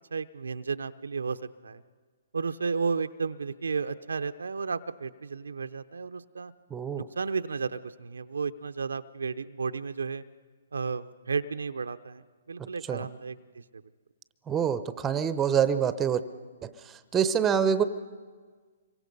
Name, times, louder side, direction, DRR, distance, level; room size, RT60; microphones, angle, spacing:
voice 1, 0.1-1.8 2.3-6.5 7.0-10.2 10.7-12.2 12.5-13.6, right 5 dB, 85° right, 8 dB, 0.7 m, -33 dB
voice 2, 6.7-7.1 12.9-13.1 14.5-16.2 16.6-16.7 17.1-17.8, right 8 dB, 15° right, 13 dB, 0.8 m, -25 dB
25.5 x 23.5 x 5.4 m, 1.5 s
hypercardioid pair, 140°, 0 cm